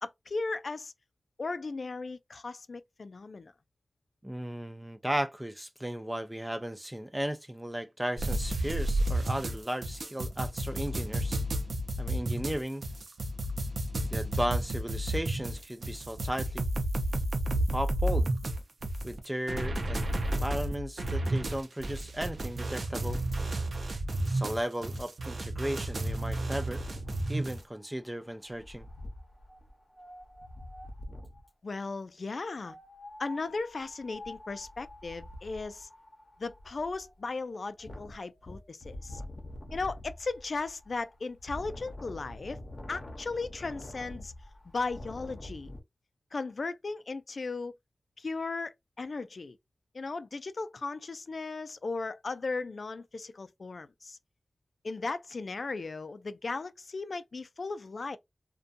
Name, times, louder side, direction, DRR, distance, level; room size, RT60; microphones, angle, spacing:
voice 1, 0.0-0.9 1.4-3.5 31.6-32.8 33.2-35.9 36.4-39.2 39.7-42.6 42.9-44.3 44.6-45.7 46.3-47.7 48.2-49.6 49.9-54.2 54.8-58.2, left 3 dB, 75° left, 0.3 m, -36 dB
voice 2, 4.2-11.4 12.0-12.8 14.1-16.7 17.7-18.3 19.0-20.1 20.4-23.2 23.9-26.8 27.3-28.9, right 1 dB, 15° right, 0.4 m, -35 dB
sound 1, 8.2-27.6, right 1 dB, 85° right, 0.5 m, -32 dB
Wind, 26.1-31.5 32.5-45.8, left 1 dB, 50° left, 0.8 m, -46 dB
2.5 x 2.2 x 2.5 m
wide cardioid pair, 90°, 0 cm